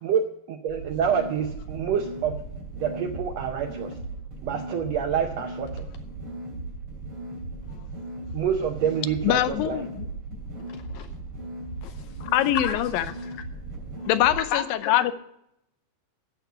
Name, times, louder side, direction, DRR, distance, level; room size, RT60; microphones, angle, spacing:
voice 1, 0.0-2.4 2.7-3.9 4.4-5.9 8.3-9.8, right 8 dB, 75° right, 6 dB, 1.5 m, -27 dB
sound 1, 0.7-14.4, right 2 dB, 40° right, 3.5 m, -37 dB
voice 2, 9.2-10.1 12.2-13.1 14.1-15.1, left 13 dB, 90° left, 13 dB, 2.5 m, -23 dB
voice 3, 10.6-11.1 11.8-12.1 12.6-13.4 14.3-15.0, left 8 dB, 75° left, 8 dB, 1.9 m, -34 dB
14.0 x 6.0 x 8.1 m, 0.80 s
omnidirectional pair, 4.0 m